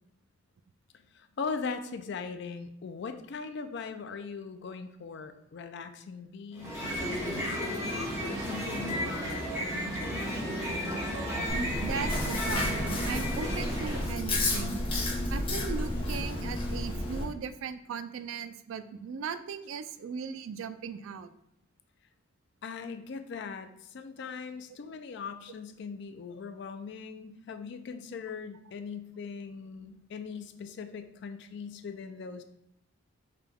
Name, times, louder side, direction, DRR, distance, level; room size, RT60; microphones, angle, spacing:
voice 1, 1.1-10.3 22.6-32.4, left 5 dB, 55° left, 8 dB, 0.3 m, -40 dB
sound 1, 6.5-14.2, equal, 10° right, 0.9 m, -33 dB
Chewing mastication, 11.5-17.2, left 1 dB, 25° left, 0.7 m, -31 dB
voice 2, 11.5-14.8 15.3-21.3, right 6 dB, 70° right, 11 dB, 0.3 m, -38 dB
5.0 x 2.2 x 3.4 m, 0.80 s
head